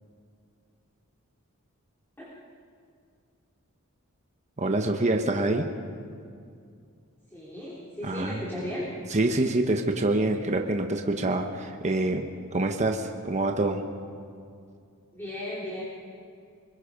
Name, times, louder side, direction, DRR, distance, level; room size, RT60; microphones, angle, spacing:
voice 1, 4.6-5.7 8.0-8.4 9.1-12.3 12.5-13.8, right 2 dB, 35° right, 4 dB, 1.1 m, -26 dB
voice 2, 7.3-8.9 15.1-15.8, left 1 dB, 10° left, -7 dB, 3.6 m, -35 dB
25.0 x 22.0 x 5.2 m, 2.3 s
head